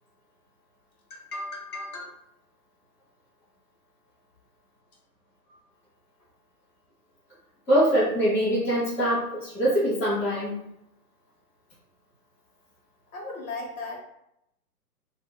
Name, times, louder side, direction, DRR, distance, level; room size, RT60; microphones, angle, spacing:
voice 1, 1.1-2.1 13.1-14.0, left 2 dB, 60° left, -1 dB, 1.2 m, -36 dB
voice 2, 7.7-10.6, equal, 10° left, -12 dB, 0.5 m, -23 dB
2.5 x 2.1 x 3.7 m, 0.81 s
figure-of-eight pair, 125°, 47 cm